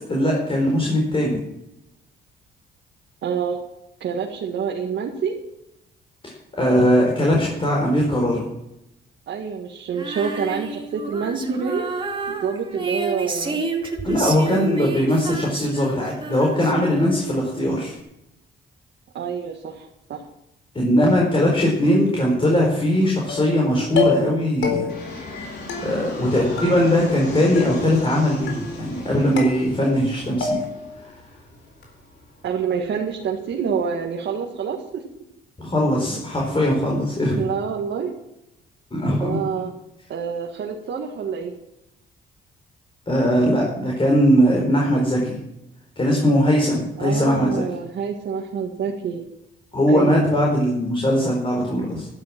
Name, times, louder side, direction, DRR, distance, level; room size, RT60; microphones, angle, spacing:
voice 1, 0.1-1.4 6.2-8.5 14.0-18.0 20.7-24.9 25.8-30.6 31.0-31.1 35.6-37.5 38.9-39.4 43.1-45.4 46.0-47.6 49.7-52.1, equal, 25° left, -2 dB, 4.6 m, -20 dB
voice 2, 3.2-3.6 4.0-5.4 9.3-11.9 12.3-13.6 19.1-20.3 32.4-35.0 37.3-38.1 39.2-39.7 40.1-41.5 47.0-49.2 49.9-50.2, right 6 dB, 65° right, 0 dB, 1.9 m, -27 dB
Female singing, 9.9-17.4, right 3 dB, 25° right, 2.4 m, -30 dB
sound 1, 23.3-23.6 24.0-24.4 24.6-25.1 25.7-26.3 26.6-27.2 27.6-28.1 28.5-29.0 29.4-30.1 30.4-30.9, left 5 dB, 75° left, 4.3 m, -28 dB
Fixed-wing aircraft airplane, 24.9-33.9, left 2 dB, 55° left, 4.9 m, -38 dB
12.0 x 12.0 x 6.0 m, 0.86 s
cardioid pair, 90°, 20 cm